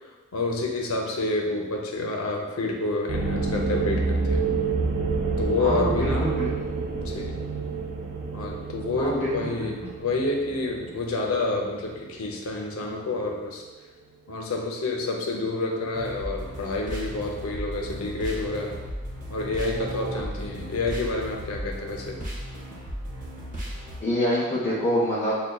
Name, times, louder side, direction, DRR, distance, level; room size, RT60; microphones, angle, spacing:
voice 1, 0.3-4.5 5.4-6.3 7.0-7.4 8.3-13.6 14.3-18.8 19.3-22.2, left 2 dB, 90° left, 0 dB, 0.6 m, -29 dB
sound 1, 3.1-12.6 12.8-12.9 13.2-13.3 19.6-20.2, right 4 dB, 80° right, 0.5 m, -29 dB
voice 2, 5.6-6.5 9.0-9.9 24.0-25.4, equal, 30° left, -8 dB, 0.6 m, -26 dB
sound 2, 15.9-24.0, equal, 40° right, 0.7 m, -36 dB
6.3 x 2.2 x 2.3 m, 1.2 s
head